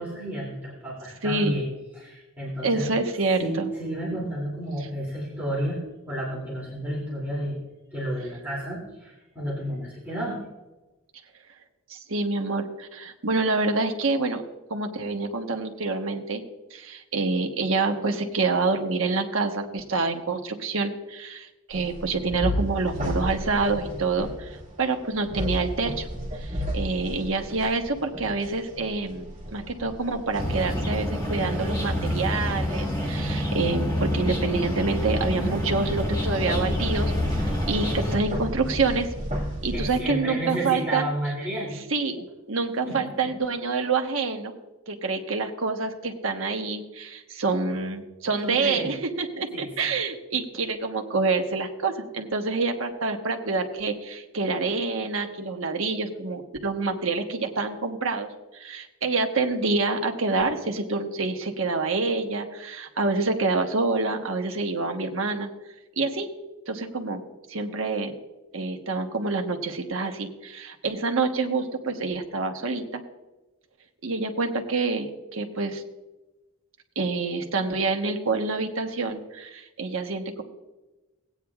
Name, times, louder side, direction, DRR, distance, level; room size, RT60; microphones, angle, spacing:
voice 1, 0.0-1.6 2.0-3.0 3.4-5.8 6.1-7.6 7.9-10.4 39.7-41.8 42.8-43.3 48.4-48.9 49.5-49.9, right 1 dB, 10° right, -6 dB, 2.6 m, -31 dB
voice 2, 1.2-1.6 2.6-3.7 11.9-14.4 14.7-16.4 16.7-26.1 26.3-39.1 39.6-41.0 41.9-44.5 44.9-65.5 66.0-66.3 66.7-67.2 67.5-68.1 68.5-73.0 74.0-75.8 76.9-80.4, right 3 dB, 65° right, 4 dB, 1.1 m, -27 dB
sound 1, 21.7-40.0, equal, 30° right, 2.3 m, -34 dB
sound 2, 30.4-38.2, left 1 dB, 15° left, 1.4 m, -27 dB
17.5 x 9.2 x 2.4 m, 1.1 s
head